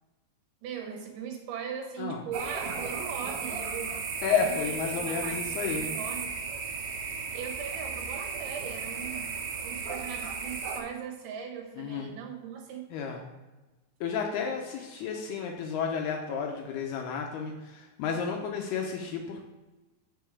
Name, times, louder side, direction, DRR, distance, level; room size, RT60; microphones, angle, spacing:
voice 1, 0.6-4.0 4.4-4.5 4.9-6.4 7.3-12.9, right 7 dB, 80° right, 1 dB, 3.1 m, -39 dB
sound 1, 2.3-10.8, right 5 dB, 65° right, 2.3 m, -35 dB
voice 2, 4.2-5.9 11.8-12.2 12.9-13.3 14.0-19.4, left 6 dB, 80° left, 2 dB, 2.3 m, -32 dB
6.9 x 6.7 x 4.7 m, 1.1 s
omnidirectional pair, 5.5 m